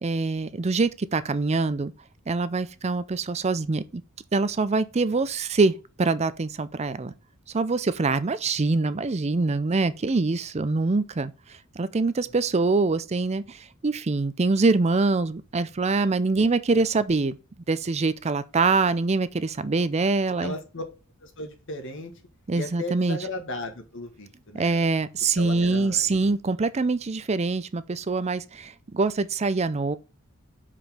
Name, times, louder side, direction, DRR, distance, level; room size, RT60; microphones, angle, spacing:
voice 1, 0.0-1.9 2.3-4.0 4.3-7.1 7.5-17.4 17.7-20.6 22.5-23.2 24.5-30.0, right 3 dB, 30° right, 0.5 m, -24 dB
voice 2, 20.4-20.8 21.2-22.1 22.5-24.8 25.4-26.1, left 1 dB, 60° left, 1.6 m, -35 dB
5.2 x 5.0 x 5.7 m
head